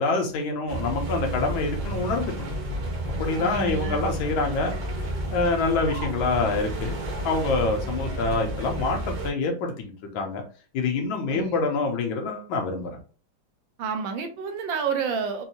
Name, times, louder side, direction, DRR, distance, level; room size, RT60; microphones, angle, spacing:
voice 1, 0.0-2.5 3.2-4.7 5.3-7.0 7.2-10.4 10.7-13.0, left 3 dB, 80° left, 2 dB, 1.6 m, -26 dB
sound 1, 0.7-9.3, right 1 dB, 55° right, 1.4 m, -31 dB
voice 2, 3.4-4.0 11.3-11.6 13.8-15.4, right 6 dB, 75° right, 6 dB, 1.5 m, -30 dB
4.8 x 2.7 x 2.8 m, 0.38 s
omnidirectional pair, 2.2 m